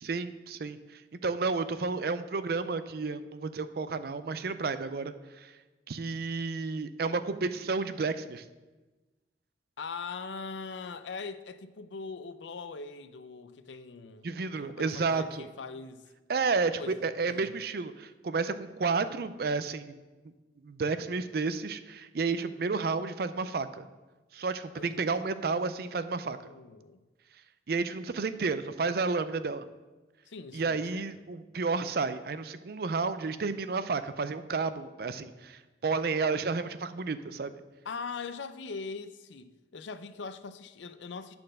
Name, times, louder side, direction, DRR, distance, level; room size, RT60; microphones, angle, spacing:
voice 1, 0.0-5.5 5.9-8.4 14.2-15.5 16.3-20.0 20.6-23.8 24.3-26.4 27.7-29.7 30.5-37.5, right 4 dB, 55° right, 0.4 m, -31 dB
voice 2, 9.8-14.3 14.6-16.1 16.8-17.5 24.7-27.0 30.3-31.2 37.8-41.4, left 4 dB, 80° left, 0.5 m, -42 dB
9.5 x 4.4 x 6.4 m
head